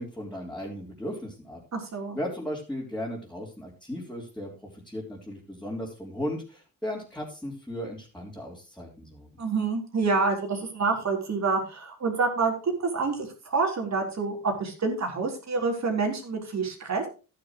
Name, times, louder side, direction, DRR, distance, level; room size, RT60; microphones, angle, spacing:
voice 1, 0.0-1.6 2.1-9.3, equal, 5° left, -4 dB, 3.6 m, -36 dB
voice 2, 1.7-2.2 9.4-17.1, right 4 dB, 50° right, 3 dB, 3.8 m, -27 dB
12.5 x 10.0 x 3.0 m, 0.33 s
cardioid pair, 100°, 35 cm